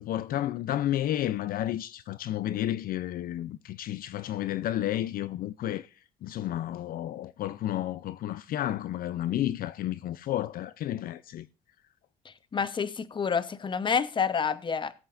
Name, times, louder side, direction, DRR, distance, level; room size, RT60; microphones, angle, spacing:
voice 1, 0.0-5.9 6.2-11.5, left 12 dB, 60° left, 0.5 m, -31 dB
voice 2, 12.5-14.9, left 6 dB, 30° left, 0.8 m, -28 dB
17.0 x 8.0 x 2.5 m
cardioid pair, 110°, 17 cm